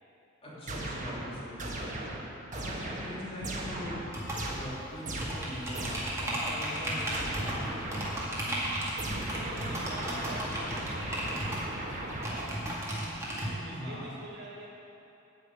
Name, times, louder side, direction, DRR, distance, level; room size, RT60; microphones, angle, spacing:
voice 1, 0.4-2.1 2.5-4.0 4.5-8.1 13.7-14.1, equal, 30° left, -8 dB, 2.8 m, -42 dB
sound 1, 0.7-6.3 7.1-8.4 9.0-12.7, right 1 dB, 35° right, 1.5 m, -38 dB
sound 2, 4.1-13.5, right 1 dB, 15° right, 2.1 m, -35 dB
voice 2, 8.6-14.7, right 1 dB, 55° right, -6 dB, 2.4 m, -47 dB
9.3 x 6.6 x 8.7 m, 2.8 s
head